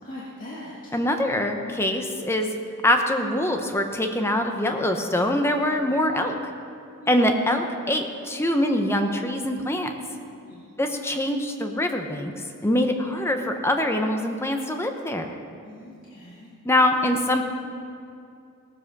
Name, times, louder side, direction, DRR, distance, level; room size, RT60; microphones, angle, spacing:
voice 1, 0.0-0.9 7.0-7.1 10.4-10.7 15.6-16.5, left 1 dB, 40° left, -7 dB, 1.8 m, -41 dB
voice 2, 0.9-2.5 2.8-6.5 7.1-9.9 10.8-12.3 12.6-15.3 16.6-17.4, left 1 dB, 10° left, 4 dB, 0.9 m, -24 dB
17.5 x 7.5 x 6.1 m, 2.5 s
head